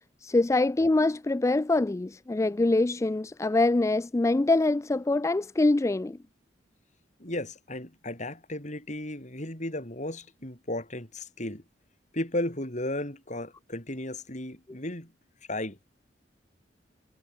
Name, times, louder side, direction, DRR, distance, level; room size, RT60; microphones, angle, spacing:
voice 1, 0.2-6.2, left 2 dB, 15° left, 0.3 m, -24 dB
voice 2, 7.2-11.6 12.1-15.1 15.5-15.8, left 1 dB, 40° left, 7.4 m, -34 dB
head